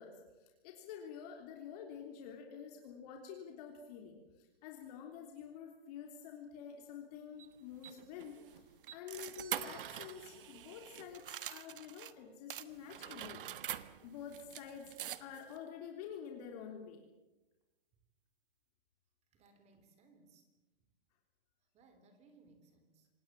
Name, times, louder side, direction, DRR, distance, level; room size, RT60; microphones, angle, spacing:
voice 1, 0.0-13.5 14.0-14.9 15.2-17.1, left 7 dB, 40° left, 2 dB, 3.5 m, -49 dB
sound 1, 7.4-12.1 12.5-15.6, right 11 dB, 60° right, 1.4 m, -45 dB
voice 2, 19.3-20.5 21.7-23.1, right 3 dB, 20° right, 8 dB, 3.6 m, -65 dB
26.5 x 19.5 x 7.5 m, 1.1 s
hypercardioid pair, 145°, 30 cm